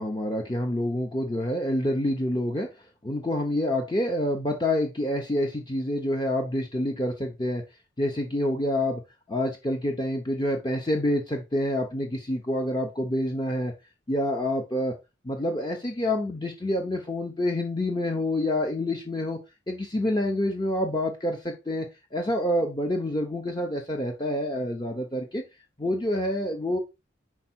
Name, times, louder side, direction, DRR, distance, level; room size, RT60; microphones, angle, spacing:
voice 1, 0.0-2.7 3.0-7.6 8.0-9.0 9.3-13.7 14.1-14.9 15.2-19.4 19.7-21.9 22.1-25.4 25.8-26.8, left 1 dB, 20° left, 2 dB, 1.0 m, -27 dB
5.9 x 5.0 x 4.4 m, 0.25 s
head